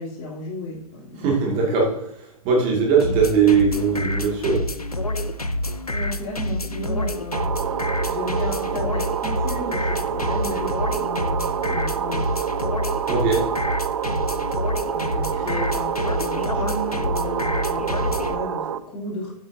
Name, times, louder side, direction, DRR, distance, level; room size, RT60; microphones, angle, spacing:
voice 1, 0.0-1.6 5.9-7.5 8.0-12.7 14.9-19.3, left 2 dB, 30° left, -3 dB, 3.2 m, -34 dB
voice 2, 1.2-1.9 2.4-4.7 13.1-13.5, right 5 dB, 30° right, -1 dB, 2.3 m, -20 dB
sound 1, 3.0-18.4, left 1 dB, 90° left, 0.7 m, -27 dB
sound 2, 7.3-18.8, right 8 dB, 55° right, 0.6 m, -27 dB
9.1 x 8.1 x 2.8 m, 0.76 s
figure-of-eight pair, 110°, 19 cm